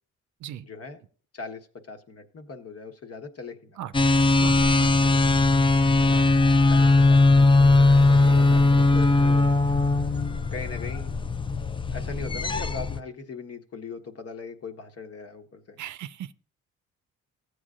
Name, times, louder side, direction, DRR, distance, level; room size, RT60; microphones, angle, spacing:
voice 1, 0.6-1.0 1.3-3.8 6.0-6.3 6.7-9.5 10.5-11.1 11.9-15.8, left 4 dB, 50° left, 1.4 m, -40 dB
sound 1, 3.9-13.0, left 2 dB, 15° left, 0.5 m, -19 dB
voice 2, 4.4-4.9 15.8-16.3, right 11 dB, 65° right, 0.6 m, -38 dB
Car passing by / Traffic noise roadway noise, 5.0-12.0, left 3 dB, 90° left, 2.0 m, -46 dB
15.0 x 8.0 x 2.5 m
supercardioid pair, 65°, 32 cm